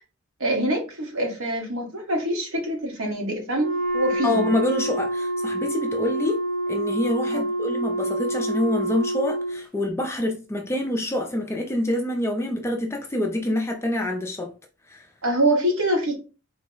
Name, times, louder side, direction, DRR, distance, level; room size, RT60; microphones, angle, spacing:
voice 1, 0.4-3.7 3.9-4.4 7.3-7.4 15.2-16.2, right 1 dB, 65° right, 1.2 m, -25 dB
Wind instrument woodwind instrument, 3.5-9.6, right 1 dB, 35° right, 0.9 m, -27 dB
voice 2, 4.2-6.4 6.7-14.5 14.9-15.1, left 1 dB, 10° left, 0.4 m, -26 dB
3.8 x 2.0 x 3.7 m
head